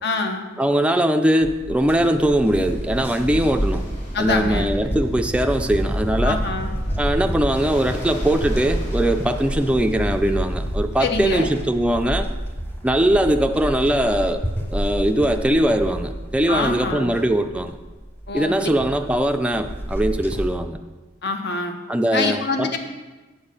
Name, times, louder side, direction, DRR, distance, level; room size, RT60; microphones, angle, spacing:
voice 1, 0.0-0.4 4.1-4.7 6.2-6.7 11.0-11.5 16.5-17.1 18.3-18.7 21.2-21.8 22.1-22.8, left 3 dB, 65° left, 5 dB, 0.9 m, -25 dB
voice 2, 0.6-3.8 4.2-6.4 7.0-12.3 12.8-14.4 14.7-17.7 18.3-20.8 21.9-22.8, right 1 dB, 5° right, 5 dB, 0.3 m, -21 dB
sound 1, 1.4-20.5, equal, 10° left, 0.9 m, -31 dB
Ocean, 2.2-12.0, equal, 45° left, 3.1 m, -29 dB
8.8 x 4.6 x 6.7 m, 1.2 s
head